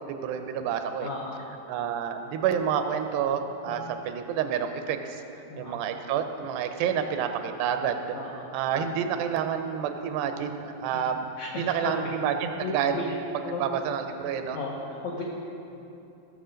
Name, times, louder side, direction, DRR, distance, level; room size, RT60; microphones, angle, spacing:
voice 1, 0.0-1.1 1.7-5.2 5.6-8.0 8.3-11.2 11.6-14.6, right 8 dB, 90° right, 7 dB, 2.8 m, -29 dB
voice 2, 1.0-1.4 3.7-3.8 5.5-5.8 8.1-8.5 11.4-12.1 12.6-13.0 13.4-13.8 14.5-14.7 15.0-15.2, left 3 dB, 80° left, -2 dB, 1.6 m, -35 dB
15.5 x 6.9 x 5.1 m, 2.8 s
omnidirectional pair, 4.6 m